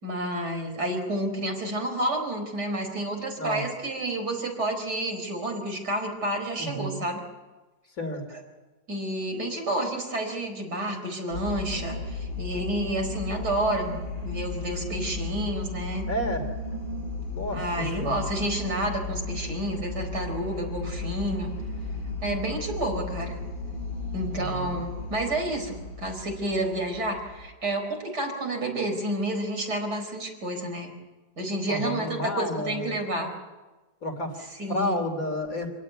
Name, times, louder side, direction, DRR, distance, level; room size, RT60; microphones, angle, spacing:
voice 1, 0.0-7.2 8.3-8.4 8.9-16.1 17.5-21.5 22.2-23.4 24.1-30.9 31.4-33.3 34.6-35.0, right 1 dB, 60° right, 3 dB, 5.1 m, -30 dB
voice 2, 6.6-7.0 8.0-8.2 9.3-9.5 16.1-16.5 17.3-18.2 24.3-24.7 31.7-33.0 34.0-34.4 34.7-35.7, left 1 dB, 45° left, 6 dB, 3.5 m, -31 dB
sound 1, 11.3-27.4, left 2 dB, 65° left, 3.8 m, -35 dB
27.0 x 17.5 x 9.6 m, 1.2 s
omnidirectional pair, 2.0 m